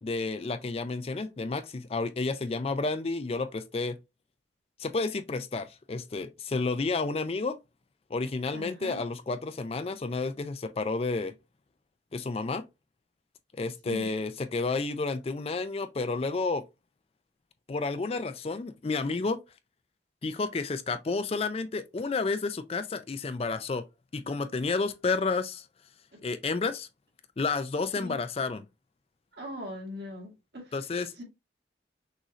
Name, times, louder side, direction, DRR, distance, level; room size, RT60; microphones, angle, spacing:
voice 1, 0.0-4.0 4.8-7.6 8.1-11.3 12.1-12.6 13.6-16.6 17.7-19.4 20.2-23.8 24.1-25.7 26.2-26.9 27.4-28.6 30.7-31.2, left 3 dB, 30° left, 0.4 m, -31 dB
voice 2, 8.5-9.0 13.9-14.1 26.1-26.2 27.9-28.2 29.3-30.8 31.2-31.3, left 1 dB, 60° right, 2.0 m, -41 dB
6.2 x 2.7 x 3.1 m
head